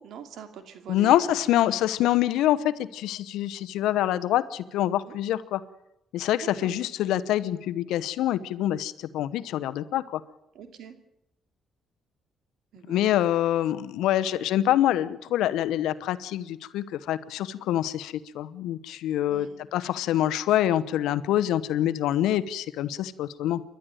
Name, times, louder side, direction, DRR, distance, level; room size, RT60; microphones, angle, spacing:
voice 1, 0.0-1.7 5.0-5.2 6.4-6.7 10.5-11.0 12.7-13.1 19.3-19.6, right 8 dB, 75° right, 8 dB, 2.6 m, -44 dB
voice 2, 0.9-5.6 6.1-10.2 12.9-23.6, left 12 dB, 90° left, 15 dB, 0.9 m, -25 dB
29.0 x 12.0 x 9.1 m, 0.86 s
cardioid pair, 90°, 0 cm